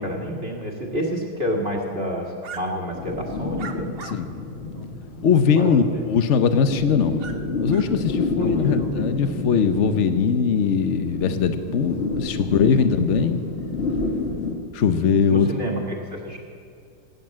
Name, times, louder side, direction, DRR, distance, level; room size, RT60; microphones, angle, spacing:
voice 1, 0.0-3.9 5.6-6.0 8.4-9.1 15.3-16.4, equal, 30° right, 0 dB, 1.8 m, -29 dB
sound 1, 2.4-2.6 3.6-4.2 4.7-4.8 7.2-7.4 7.7-7.9, right 6 dB, 75° right, 0.5 m, -37 dB
sound 2, 2.9-14.5, left 3 dB, 35° left, 1.5 m, -30 dB
voice 2, 4.1-4.5 5.2-7.2 7.6-13.4 14.7-15.5, left 6 dB, 75° left, 9 dB, 0.6 m, -20 dB
18.0 x 9.3 x 7.5 m, 2.4 s
omnidirectional pair, 2.4 m